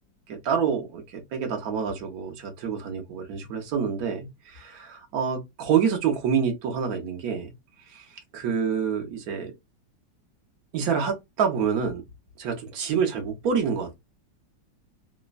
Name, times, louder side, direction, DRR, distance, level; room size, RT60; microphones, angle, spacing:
voice 1, 0.3-7.5 7.9-9.5 10.7-12.0 12.4-14.0, right 7 dB, 65° right, 1.0 m, -27 dB
3.3 x 2.0 x 2.2 m
omnidirectional pair, 1.9 m